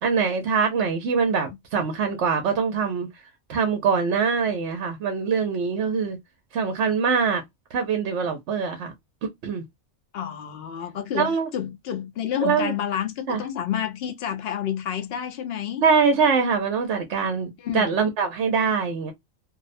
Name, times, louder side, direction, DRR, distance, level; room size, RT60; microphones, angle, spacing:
voice 1, 0.0-3.1 3.5-6.2 6.5-7.4 7.7-8.9 9.2-9.6 11.1-11.5 12.4-12.7 13.3-13.4 15.8-19.1, right 5 dB, 70° right, 0.9 m, -23 dB
voice 2, 10.1-15.8 17.6-17.8, left 9 dB, 60° left, 0.8 m, -29 dB
2.6 x 2.0 x 2.5 m
omnidirectional pair, 1.3 m